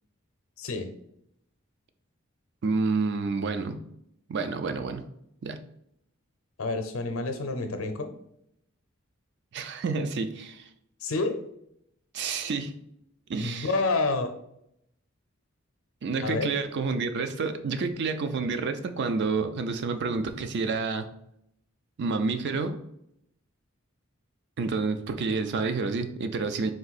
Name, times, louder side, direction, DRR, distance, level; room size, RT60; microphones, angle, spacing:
voice 1, 0.6-0.9 6.6-8.1 11.0-11.4 13.4-14.3 16.2-16.5, left 3 dB, 90° left, 7 dB, 0.6 m, -28 dB
voice 2, 2.6-3.8 4.3-5.0 5.4-5.6 9.5-10.6 12.1-12.7 13.3-13.7 16.0-21.1 22.0-22.8 24.6-26.7, right 4 dB, 55° right, 9 dB, 0.4 m, -29 dB
3.9 x 2.6 x 4.0 m, 0.75 s
head